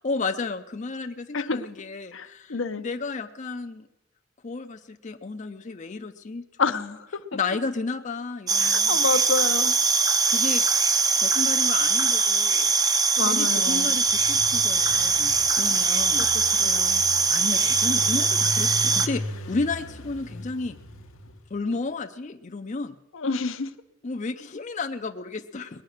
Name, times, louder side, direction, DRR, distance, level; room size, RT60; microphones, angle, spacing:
voice 1, 0.0-3.9 4.4-6.4 6.7-7.0 7.3-9.0 10.3-10.6 11.2-12.7 13.2-16.3 17.3-20.8 21.5-23.0 24.0-25.8, left 3 dB, 40° left, 6 dB, 0.5 m, -32 dB
voice 2, 1.3-1.7 2.1-2.8 6.6-7.4 8.6-9.8 13.2-14.0 16.2-17.0 23.1-23.7, left 4 dB, 70° left, 9 dB, 0.7 m, -29 dB
sound 1, 8.5-19.1, right 4 dB, 20° right, 0.6 m, -22 dB
Engine, 13.6-21.6, left 1 dB, 85° left, 1.1 m, -38 dB
19.5 x 9.4 x 6.5 m, 0.94 s
head